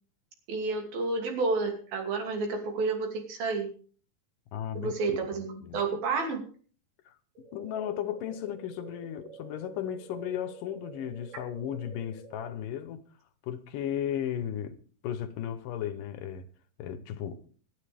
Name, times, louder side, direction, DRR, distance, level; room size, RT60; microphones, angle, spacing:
voice 1, 0.5-3.7 4.8-6.4, right 3 dB, 90° right, 4.5 m, -30 dB
voice 2, 4.5-4.9 5.6-5.8 7.1-13.0 13.4-16.5 16.8-17.4, left 10 dB, 75° left, 2.5 m, -35 dB
sound 1, 7.4-12.4, right 5 dB, 70° right, 4.3 m, -49 dB
26.5 x 9.4 x 3.4 m
omnidirectional pair, 4.1 m